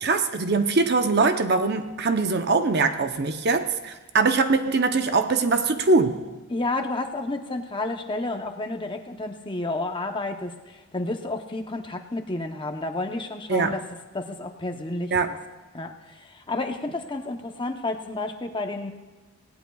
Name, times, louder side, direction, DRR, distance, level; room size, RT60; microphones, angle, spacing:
voice 1, 0.0-6.2 13.5-13.7 15.1-15.3, right 3 dB, 50° right, 7 dB, 0.7 m, -22 dB
voice 2, 6.5-13.8 14.1-15.4 15.7-18.9, left 2 dB, 20° left, 4 dB, 0.8 m, -31 dB
18.5 x 17.5 x 2.3 m, 1.2 s
head